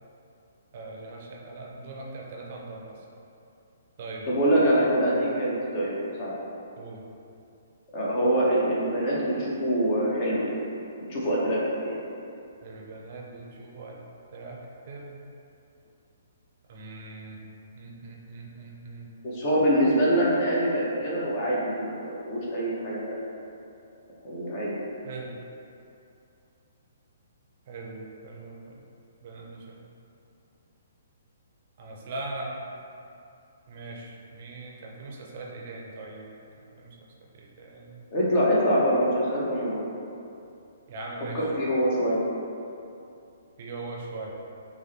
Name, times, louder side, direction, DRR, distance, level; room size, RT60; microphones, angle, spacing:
voice 1, 0.7-3.0 4.0-4.3 6.8-7.0 12.6-14.0 14.3-15.2 16.7-17.4 17.8-19.1 25.0-25.3 27.7-28.8 29.2-29.8 31.8-32.6 33.7-36.3 36.6-37.0 37.3-38.0 40.9-41.4 43.6-44.3, right 2 dB, 50° right, -1 dB, 0.5 m, -40 dB
voice 2, 4.3-6.4 7.9-10.6 11.1-12.0 19.2-23.2 24.2-24.7 38.1-39.9 41.3-42.2, equal, 35° left, -6 dB, 1.0 m, -24 dB
5.9 x 2.1 x 2.7 m, 2.7 s
figure-of-eight pair, 125°, 0 cm